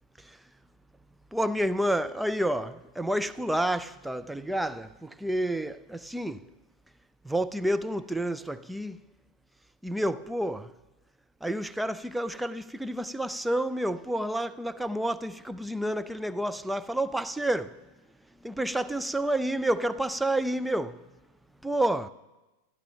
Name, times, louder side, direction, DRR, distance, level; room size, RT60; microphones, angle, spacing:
voice 1, 1.3-6.4 7.2-9.0 9.8-10.7 11.4-17.8 18.4-21.1 21.6-22.1, right 1 dB, 5° right, 0.5 m, -29 dB
27.0 x 12.5 x 2.9 m
figure-of-eight pair, 90°, 0 cm